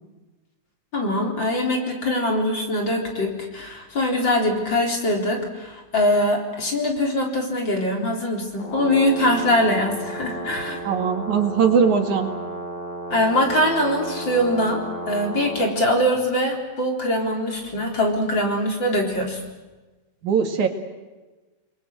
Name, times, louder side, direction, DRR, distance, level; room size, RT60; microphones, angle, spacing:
voice 1, 0.9-10.8 13.1-19.4, left 1 dB, 40° left, 1 dB, 4.6 m, -22 dB
Brass instrument, 8.5-15.7, right 2 dB, 55° left, 8.3 m, -33 dB
voice 2, 10.9-12.3 20.2-20.7, right 6 dB, 80° right, 5 dB, 3.6 m, -20 dB
29.5 x 22.0 x 8.0 m, 1.2 s
omnidirectional pair, 3.4 m